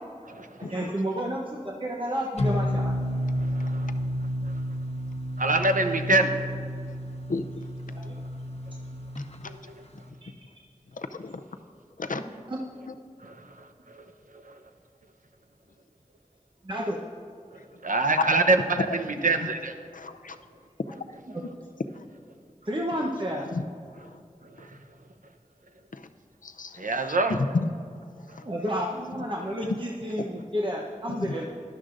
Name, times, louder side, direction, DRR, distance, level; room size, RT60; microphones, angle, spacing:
voice 1, 0.6-2.9 7.9-8.2 10.2-10.3 12.5-12.6 16.6-17.0 21.3-21.4 22.7-23.4 28.4-31.4, equal, 40° right, -2 dB, 0.9 m, -31 dB
sound 1, 2.4-9.2, equal, 50° left, 1.0 m, -30 dB
voice 2, 5.4-6.3 13.2-13.4 13.9-14.0 17.8-19.7 26.8-27.4, right 2 dB, 80° right, 6 dB, 0.8 m, -24 dB
voice 3, 7.3-7.6 9.4-9.5 11.0-11.4 12.0-12.2 18.3-18.4 19.9-20.4 23.5-23.6 24.1-24.2 25.9-26.0 26.4-27.7 31.2-31.4, left 3 dB, 75° left, 8 dB, 0.5 m, -32 dB
17.5 x 12.0 x 2.5 m, 2.2 s
wide cardioid pair, 50°, 14 cm